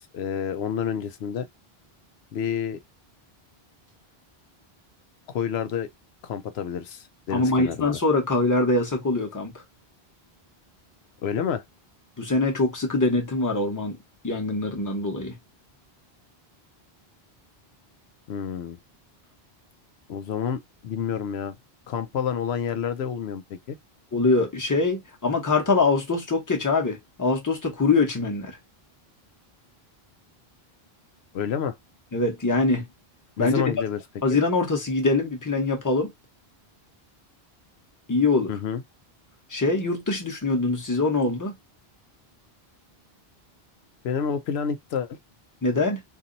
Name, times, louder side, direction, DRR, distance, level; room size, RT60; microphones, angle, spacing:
voice 1, 0.0-1.5 2.3-2.8 5.3-5.9 6.2-8.0 11.2-11.6 18.3-18.8 20.1-21.6 21.9-23.8 31.3-31.8 33.4-34.0 34.3-34.4 38.5-38.8 44.0-45.2, left 7 dB, 85° left, 0.8 m, -29 dB
voice 2, 7.3-9.5 12.2-14.0 14.2-15.4 24.1-28.5 32.1-32.9 33.4-33.6 34.2-36.1 38.1-38.5 39.5-41.5 45.6-46.0, left 3 dB, 20° left, 0.9 m, -23 dB
2.7 x 2.6 x 3.9 m
omnidirectional pair, 1.1 m